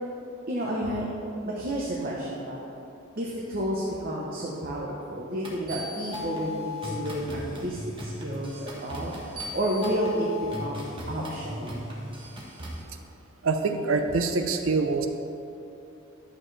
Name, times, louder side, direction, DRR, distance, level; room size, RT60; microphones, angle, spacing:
voice 1, 0.5-1.1 1.4-2.6 3.2-10.3 10.5-11.9, equal, 45° right, -4 dB, 0.9 m, -31 dB
sound 1, 5.4-12.8, left 2 dB, 25° right, 1.4 m, -37 dB
voice 2, 13.4-15.1, right 4 dB, 75° right, 6 dB, 0.7 m, -25 dB
11.5 x 7.0 x 3.3 m, 2.7 s
head